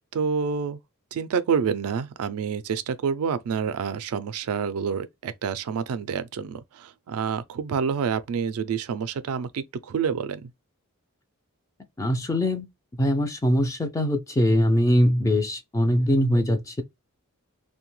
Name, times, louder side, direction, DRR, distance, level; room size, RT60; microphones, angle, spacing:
voice 1, 0.1-0.8 1.1-10.5, right 6 dB, 70° right, 0.3 m, -28 dB
voice 2, 12.0-12.7 13.0-16.8, equal, 15° left, 0.3 m, -22 dB
2.7 x 2.2 x 3.0 m
head